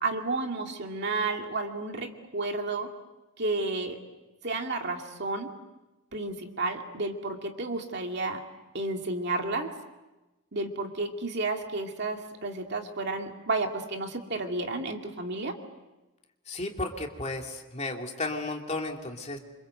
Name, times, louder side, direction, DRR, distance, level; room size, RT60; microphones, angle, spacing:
voice 1, 0.0-2.9 3.4-4.0 4.4-5.5 6.1-8.4 8.7-9.7 10.5-15.6, right 3 dB, 50° right, 3 dB, 2.4 m, -31 dB
voice 2, 16.5-19.4, left 2 dB, 30° left, 2 dB, 2.6 m, -34 dB
28.0 x 26.0 x 7.9 m, 1.1 s
head